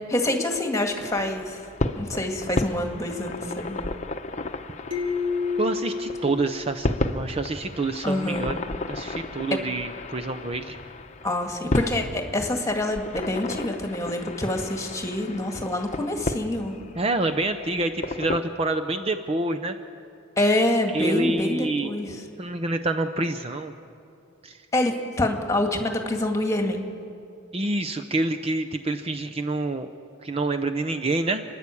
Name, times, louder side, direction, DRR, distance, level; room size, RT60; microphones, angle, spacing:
voice 1, 0.1-1.6 2.0-3.8 8.0-8.5 9.5-9.6 11.2-16.7 20.4-22.2 24.7-26.8, left 1 dB, 15° left, 3 dB, 2.0 m, -26 dB
sound 1, 1.0-18.4, left 2 dB, 35° left, 0.9 m, -33 dB
sound 2, 4.9-7.5, left 5 dB, 70° right, 3.2 m, -30 dB
voice 2, 5.6-8.6 8.9-10.8 17.0-19.8 20.9-21.9 22.4-23.7 24.4-24.6 27.5-29.9 30.2-31.4, right 2 dB, 30° right, 7 dB, 0.7 m, -27 dB
29.5 x 11.0 x 8.5 m, 2.7 s
head